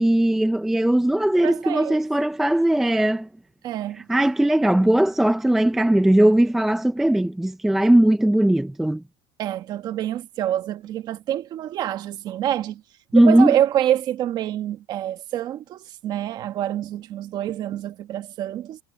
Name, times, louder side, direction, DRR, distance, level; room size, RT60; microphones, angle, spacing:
voice 1, 0.0-3.3 4.1-9.0 13.1-13.5, right 1 dB, ahead, 0.4 m, -19 dB
voice 2, 1.4-2.0 3.6-4.1 9.4-12.8 13.1-18.8, right 11 dB, 30° right, 1.3 m, -26 dB
cardioid pair, 170°, 13 cm